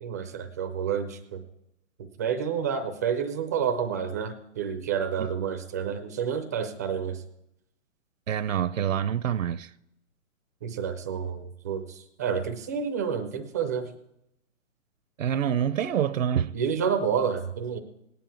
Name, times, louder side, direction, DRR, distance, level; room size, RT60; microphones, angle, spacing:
voice 1, 0.0-1.4 2.2-7.2 10.6-13.9 16.5-17.8, right 7 dB, 15° right, 0.4 m, -29 dB
voice 2, 8.3-9.7 15.2-16.5, right 9 dB, 75° right, 0.6 m, -26 dB
18.5 x 9.5 x 4.5 m
hypercardioid pair, 135°, 40 cm